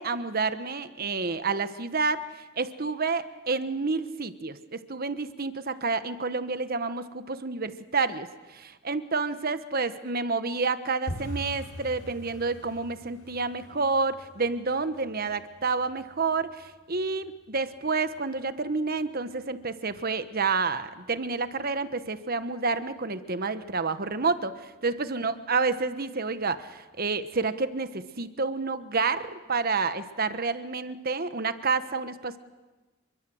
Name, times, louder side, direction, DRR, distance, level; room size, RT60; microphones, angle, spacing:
voice 1, 0.0-2.2 2.6-32.4, right 4 dB, 45° right, 11 dB, 1.2 m, -29 dB
sound 1, 11.1-21.8 22.0-22.7 23.0-23.3 23.6-23.9 24.2-24.3 24.8-25.4 25.7-25.8 26.3-26.4, equal, 90° left, 4.3 m, -45 dB
29.0 x 23.0 x 7.9 m, 1.2 s
head